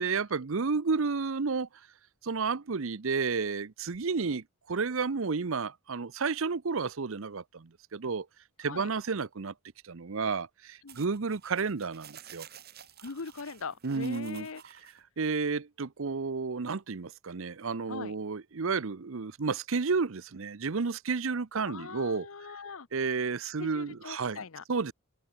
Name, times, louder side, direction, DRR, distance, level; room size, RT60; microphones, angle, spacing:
voice 1, 0.0-1.7 2.2-8.3 8.6-9.5 9.8-12.5 13.8-22.3 22.9-24.4 24.7-24.9, right 4 dB, 65° right, 0.7 m, -31 dB
sound 1, 10.9-15.0, right 9 dB, 45° right, 2.8 m, -52 dB
voice 2, 13.0-14.9 17.9-18.1 21.7-22.9 23.6-24.6, left 4 dB, 70° left, 0.9 m, -41 dB
open air
head